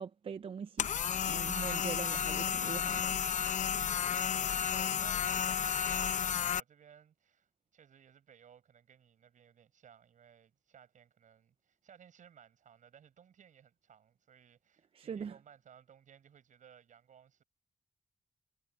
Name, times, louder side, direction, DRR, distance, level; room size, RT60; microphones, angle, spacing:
voice 1, 0.0-3.2 14.9-15.4, right 7 dB, 45° right, 0.5 m, -42 dB
sound 1, 0.8-6.6, left 8 dB, 65° left, 0.7 m, -32 dB
voice 2, 4.2-17.4, right 8 dB, 70° right, 7.1 m, -60 dB
wide cardioid pair, 170°, 13 cm